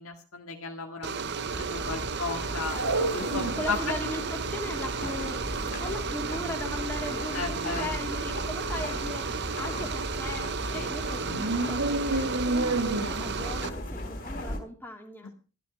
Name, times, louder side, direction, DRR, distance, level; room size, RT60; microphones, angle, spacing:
voice 1, 0.0-2.8 3.1-3.9 7.3-8.0 10.7-10.9 12.9-13.2 15.2-15.3, left 4 dB, 65° left, 2 dB, 1.9 m, -35 dB
sound 1, 1.0-13.7, right 5 dB, 50° right, 0.8 m, -34 dB
sound 2, 1.5-14.6, left 1 dB, 40° left, 3.8 m, -37 dB
sound 3, 2.3-3.8 4.2-4.3 4.5-6.7 7.0-7.2 7.6-8.1 8.4-8.5 8.9-9.0 9.5-10.8 11.0-13.1, right 2 dB, 75° right, 1.9 m, -30 dB
voice 2, 2.7-5.5 5.8-15.3, left 1 dB, 10° left, 1 dB, 2.6 m, -38 dB
13.5 x 12.5 x 5.1 m, 0.35 s
head